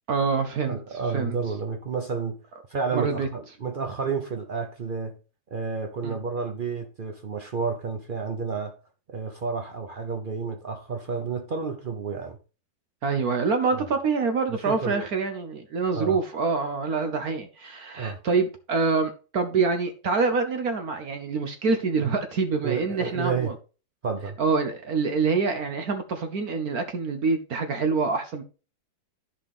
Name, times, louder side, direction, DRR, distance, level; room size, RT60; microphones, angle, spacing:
voice 1, 0.1-0.8 1.1-1.4 2.9-3.3 6.0-6.2 13.0-23.5 24.4-28.4, right 4 dB, 60° right, 1.3 m, -26 dB
voice 2, 0.7-2.4 2.7-5.2 5.5-8.7 9.1-12.4 13.7-13.8 14.7-15.1 15.9-16.2 17.9-18.2 22.6-23.5 24.0-24.4, right 5 dB, 90° right, 0.4 m, -30 dB
11.5 x 5.1 x 3.6 m
omnidirectional pair, 2.0 m